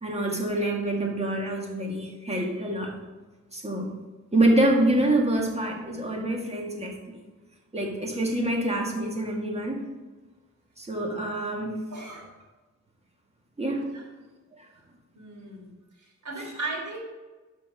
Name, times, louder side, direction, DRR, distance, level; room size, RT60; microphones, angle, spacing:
voice 1, 0.0-2.9 3.5-3.9 4.3-7.2 7.7-9.9 10.8-11.9 13.6-13.9, right 1 dB, 20° right, 0 dB, 1.9 m, -26 dB
voice 2, 11.9-12.3 13.9-14.0 15.1-15.7 16.2-17.0, right 3 dB, 75° right, -2 dB, 3.2 m, -36 dB
12.0 x 4.6 x 5.6 m, 1.2 s
wide cardioid pair, 110°, 31 cm